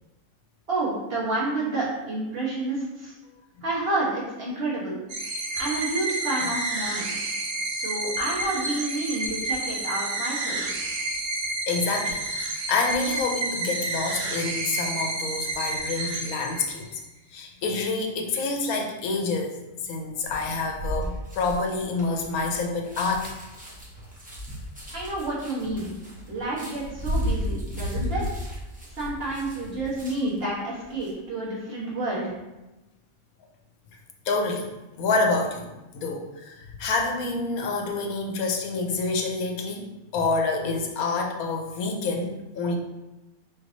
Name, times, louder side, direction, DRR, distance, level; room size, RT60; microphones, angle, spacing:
voice 1, 0.7-3.1 3.6-5.0 5.6-7.0 7.7-10.6 24.9-25.9 26.3-28.2 29.0-32.3, right 2 dB, 45° right, -6 dB, 1.4 m, -29 dB
sound 1, 5.1-17.0, right 2 dB, 65° right, 1.0 m, -30 dB
voice 2, 11.7-17.0 17.3-19.6 19.8-23.3 34.3-34.7 35.0-35.7 35.9-39.8 40.1-42.8, left 3 dB, 85° left, 2 dB, 1.2 m, -27 dB
sound 2, 20.3-30.4 30.8-31.1, equal, 5° right, 0.8 m, -34 dB
4.8 x 3.9 x 2.6 m, 1.0 s
omnidirectional pair, 1.5 m